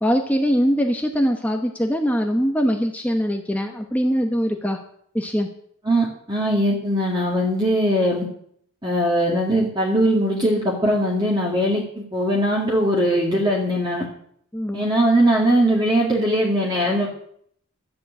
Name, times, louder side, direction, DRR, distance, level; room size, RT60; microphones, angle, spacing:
voice 1, 0.0-4.8 5.1-5.5 14.5-14.8, equal, 5° left, 3 dB, 0.9 m, -22 dB
voice 2, 5.9-8.3 8.8-14.0 14.7-17.1, equal, 20° right, -3 dB, 2.2 m, -20 dB
12.0 x 7.6 x 8.8 m, 0.66 s
head